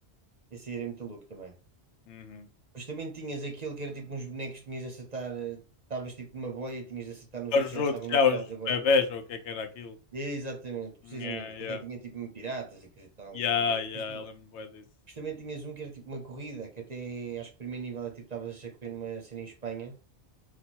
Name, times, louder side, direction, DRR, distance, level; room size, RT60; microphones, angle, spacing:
voice 1, 0.5-1.5 2.7-5.6 5.9-8.8 10.1-13.8 14.1-14.2 15.1-20.0, right 4 dB, 45° right, 3 dB, 0.7 m, -38 dB
voice 2, 2.1-2.5 7.5-10.0 11.1-11.8 13.3-14.8, left 5 dB, 80° left, 8 dB, 0.9 m, -28 dB
4.1 x 2.2 x 4.4 m, 0.33 s
omnidirectional pair, 1.2 m